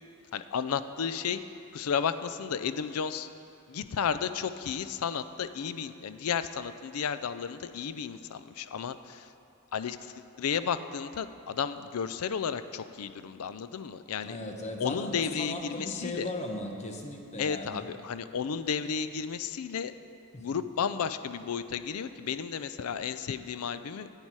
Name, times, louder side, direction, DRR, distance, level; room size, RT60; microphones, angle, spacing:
voice 1, 0.3-1.4 1.7-3.3 3.7-9.3 9.7-14.4 14.8-16.3 17.4-19.9 20.4-24.1, left 7 dB, 85° left, 12 dB, 0.4 m, -33 dB
voice 2, 14.2-17.9 20.3-20.6, left 1 dB, 30° left, 2 dB, 1.0 m, -37 dB
9.7 x 8.8 x 4.7 m, 2.5 s
head